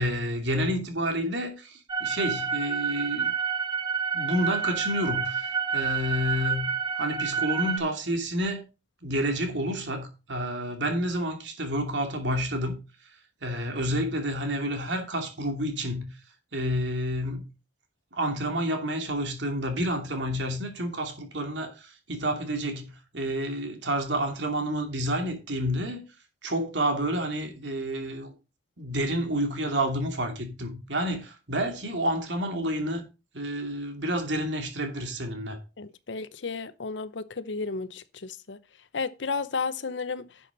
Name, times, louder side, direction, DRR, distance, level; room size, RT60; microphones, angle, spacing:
voice 1, 0.0-3.3 4.1-8.7 9.0-12.8 13.4-16.1 16.5-17.5 18.1-26.1 26.4-28.3 28.8-33.0 33.3-35.6, equal, 75° right, 2.7 m, -29 dB
sound 1, 1.9-7.8, right 6 dB, 25° right, 1.3 m, -29 dB
voice 2, 35.8-38.6 38.9-40.3, left 4 dB, 80° left, 0.8 m, -33 dB
11.0 x 7.1 x 4.0 m
head